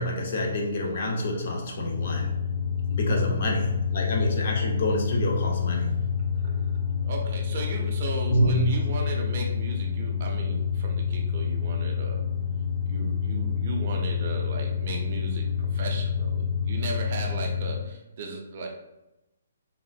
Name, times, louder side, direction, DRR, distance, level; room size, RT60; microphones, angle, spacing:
voice 1, 0.0-2.3 2.9-6.1 8.3-8.8, left 1 dB, 50° left, 0 dB, 0.6 m, -27 dB
sound 1, 1.8-17.9, left 7 dB, 30° left, 1.2 m, -28 dB
voice 2, 6.4-6.8 7.0-12.2 12.9-18.7, right 3 dB, 40° right, 0 dB, 0.6 m, -36 dB
3.6 x 2.4 x 2.3 m, 0.94 s
hypercardioid pair, 160°, 0 cm